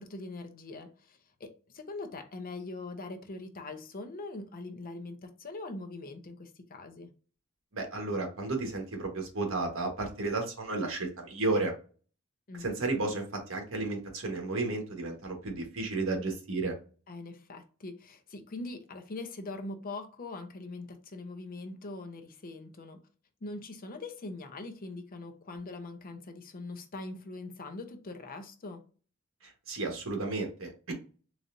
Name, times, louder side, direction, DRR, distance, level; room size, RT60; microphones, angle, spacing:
voice 1, 0.0-7.1 12.5-12.7 17.1-23.0 23.4-28.8, left 2 dB, 45° left, 0.6 m, -42 dB
voice 2, 7.7-11.7 12.6-13.2 13.5-16.7 29.7-30.9, right 3 dB, 75° right, 1.3 m, -32 dB
4.0 x 3.2 x 2.5 m
head